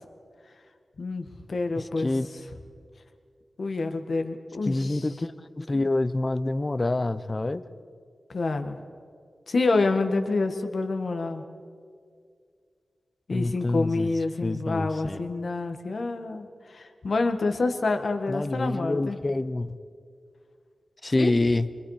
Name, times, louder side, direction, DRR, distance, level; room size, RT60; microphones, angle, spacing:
voice 1, 1.0-2.1 3.6-5.1 8.3-8.8 9.5-11.4 13.3-19.2 21.1-21.3, left 3 dB, 60° left, 7 dB, 1.5 m, -27 dB
voice 2, 1.8-2.3 4.6-7.6 13.3-14.1 14.4-15.2 18.3-19.8 21.0-21.7, left 2 dB, 25° left, 12 dB, 0.7 m, -27 dB
26.0 x 24.0 x 4.9 m, 2.2 s
wide cardioid pair, 130°, 0 cm